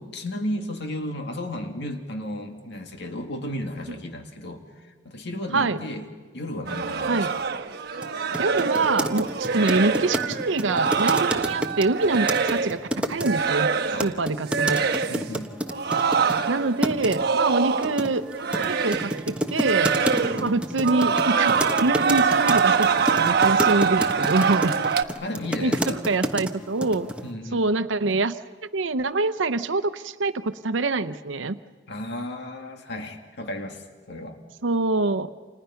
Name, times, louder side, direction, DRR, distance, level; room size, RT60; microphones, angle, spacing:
voice 1, 0.0-6.1 6.3-7.4 13.9-14.2 15.1-15.5 20.2-20.6 25.2-26.0 27.2-27.6 31.9-34.4, left 1 dB, 65° left, 5 dB, 2.1 m, -34 dB
sound 1, 6.7-12.8 13.2-14.2 14.5-15.2 15.7-18.1 18.3-19.2 19.6-20.5 20.8-25.0, right 5 dB, 60° right, 1.2 m, -24 dB
sound 2, 8.0-8.1 8.3-13.3 14.0-16.4 16.8-17.2 17.8-26.5 26.8-27.2, equal, 5° right, 1.2 m, -29 dB
voice 2, 8.4-13.7 14.0-14.8 16.5-18.2 18.6-19.9 20.4-21.5 21.8-24.8 25.6-27.1 27.5-28.4 28.7-31.6 34.6-35.3, right 3 dB, 85° right, 11 dB, 0.8 m, -25 dB
29.5 x 27.0 x 5.8 m, 1.6 s
head